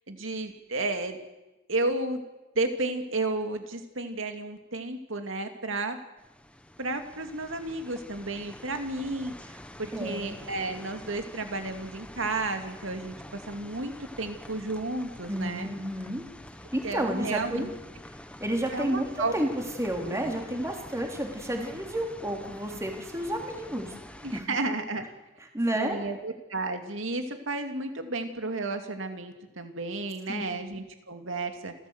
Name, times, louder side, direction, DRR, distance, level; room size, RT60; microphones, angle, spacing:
voice 1, 0.1-1.2 1.7-2.2 2.5-6.0 6.8-15.7 16.8-17.7 18.7-19.3 20.0-20.2 24.2-25.1 25.7-31.7, right 2 dB, 65° right, 6 dB, 2.6 m, -32 dB
sound 1, 6.2-24.4, left 1 dB, 5° left, 1.2 m, -47 dB
voice 2, 9.9-10.4 15.3-16.2 16.7-17.7 18.4-19.5 19.8-23.9 24.3-24.5 25.5-26.0 30.3-30.4, right 1 dB, 15° right, 2 dB, 3.2 m, -31 dB
29.0 x 13.5 x 8.1 m, 1.0 s
head